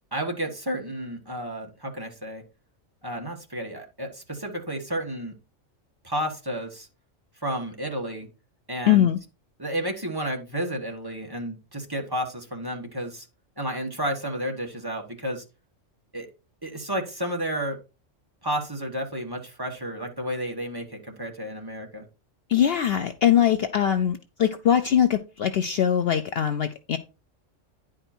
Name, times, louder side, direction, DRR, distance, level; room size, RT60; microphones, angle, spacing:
voice 1, 0.1-2.4 3.0-5.3 6.0-6.9 7.4-8.3 8.7-9.1 9.6-13.3 13.6-15.4 16.1-16.3 16.6-17.8 18.4-22.0, equal, 20° right, 1.6 m, -31 dB
voice 2, 8.9-9.2 22.5-27.0, left 10 dB, 60° left, 0.7 m, -22 dB
10.0 x 5.0 x 4.4 m
omnidirectional pair, 1.3 m